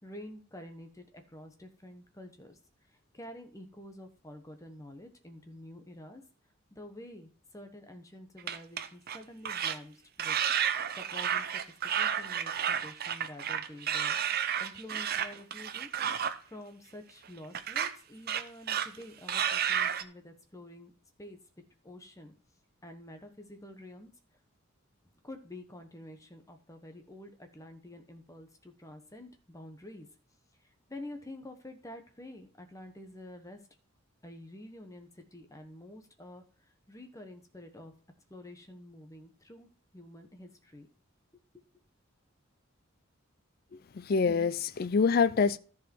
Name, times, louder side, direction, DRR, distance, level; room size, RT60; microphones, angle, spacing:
voice 1, 0.0-2.6 2.9-6.2 6.7-10.4 11.0-14.2 14.6-15.9 16.2-20.9 21.2-21.4 21.8-22.3 22.8-24.1 25.2-30.1 30.9-33.6 34.2-37.9 38.3-39.7 39.9-40.9, left 1 dB, 15° left, 1.1 m, -48 dB
sound 1, 8.4-9.2 9.5-9.8 10.2-16.4 17.5-17.9 18.3-19.0 19.3-20.0, right 8 dB, 45° right, 0.6 m, -31 dB
voice 2, 43.9-45.6, left 5 dB, 45° left, 0.4 m, -26 dB
14.0 x 4.9 x 4.4 m
head